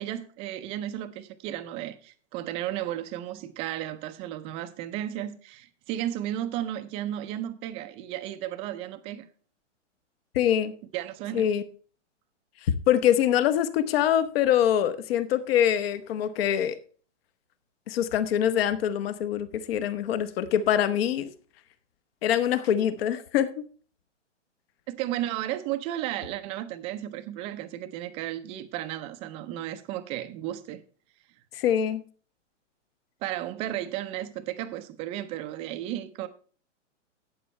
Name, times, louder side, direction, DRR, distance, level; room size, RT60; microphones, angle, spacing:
voice 1, 0.0-9.3 10.9-11.5 24.9-30.8 33.2-36.3, right 12 dB, 15° right, 0.4 m, -34 dB
voice 2, 10.3-10.7 11.3-11.6 12.9-16.8 17.9-21.3 22.2-23.6 31.5-32.0, left 10 dB, 50° left, 1.0 m, -24 dB
12.0 x 8.6 x 3.2 m
hypercardioid pair, 130°, 37 cm